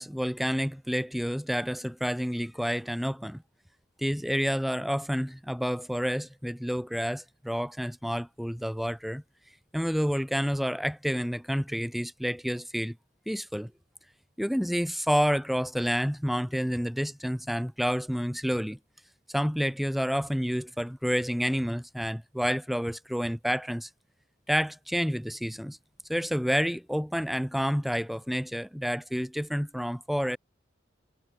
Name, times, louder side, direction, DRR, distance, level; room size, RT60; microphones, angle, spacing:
voice 1, 0.0-3.4 4.0-9.2 9.7-12.9 13.3-13.7 14.4-18.8 19.3-23.9 24.5-25.8 26.1-30.4, equal, ahead, 0.8 m, -29 dB
head